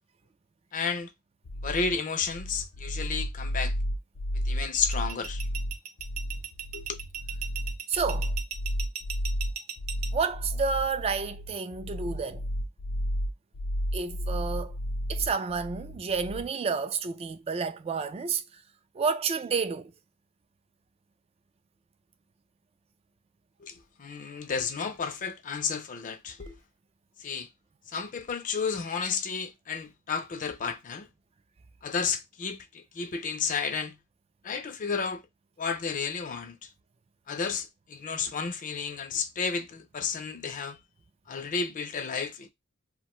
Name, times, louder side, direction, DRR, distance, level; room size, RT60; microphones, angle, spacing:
voice 1, 0.7-1.1 1.6-3.7 4.5-5.4 6.7-6.9 23.6-26.6 27.2-27.5 27.9-31.1 31.8-34.0 34.4-35.2 35.6-36.7 37.3-40.8 41.3-42.5, left 5 dB, 40° left, 0.4 m, -32 dB
sound 1, 1.5-16.5, equal, 85° left, 0.6 m, -33 dB
sound 2, 4.7-10.1, right 8 dB, 85° right, 0.5 m, -36 dB
voice 2, 7.9-8.3 10.1-12.4 13.9-14.8 15.1-18.4 18.9-19.9, right 5 dB, 30° right, 0.3 m, -30 dB
2.6 x 2.2 x 2.9 m
head